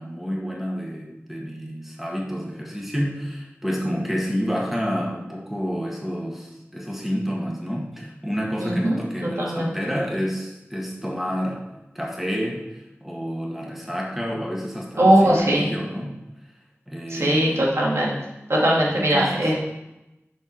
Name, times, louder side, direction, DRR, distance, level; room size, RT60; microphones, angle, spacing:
voice 1, 0.0-11.6 12.0-16.2 16.9-17.7 18.9-19.5, equal, 5° right, -2 dB, 1.9 m, -29 dB
voice 2, 8.6-9.7 15.0-15.7 17.1-18.2 18.5-19.6, right 1 dB, 75° right, -4 dB, 2.1 m, -20 dB
10.5 x 4.6 x 4.5 m, 0.94 s
wide cardioid pair, 50°, 5 cm